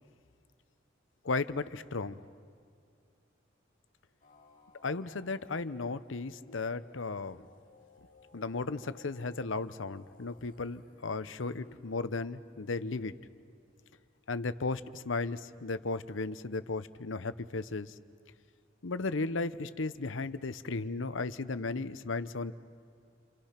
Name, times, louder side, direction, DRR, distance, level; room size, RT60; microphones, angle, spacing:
voice 1, 1.2-2.2 4.8-7.4 8.3-13.2 14.3-17.9 18.8-22.5, left 3 dB, 80° left, 13 dB, 0.8 m, -35 dB
sound 1, 4.2-14.0, left 3 dB, 45° left, 2.4 m, -61 dB
29.5 x 27.5 x 5.9 m, 2.3 s
head